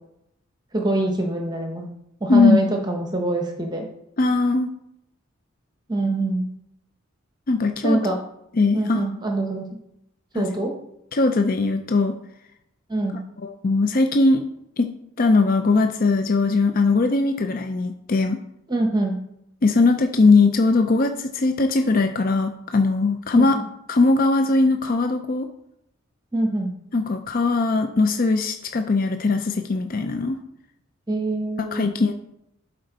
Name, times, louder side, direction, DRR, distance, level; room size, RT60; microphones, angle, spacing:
voice 1, 0.7-1.9 2.2-3.9 5.9-6.5 7.8-8.2 8.7-9.7 10.3-10.7 12.9-13.2 18.7-19.2 23.3-23.6 26.3-26.7 31.1-32.0, right 2 dB, 20° right, 2 dB, 1.0 m, -24 dB
voice 2, 4.2-4.7 7.5-8.0 8.6-9.0 10.3-10.4 11.1-12.2 13.4-14.4 14.8-14.9 15.2-18.4 19.6-23.6 23.9-25.5 26.9-30.4 31.7-32.1, left 3 dB, 45° left, 6 dB, 0.5 m, -20 dB
11.5 x 4.4 x 4.0 m, 0.79 s
head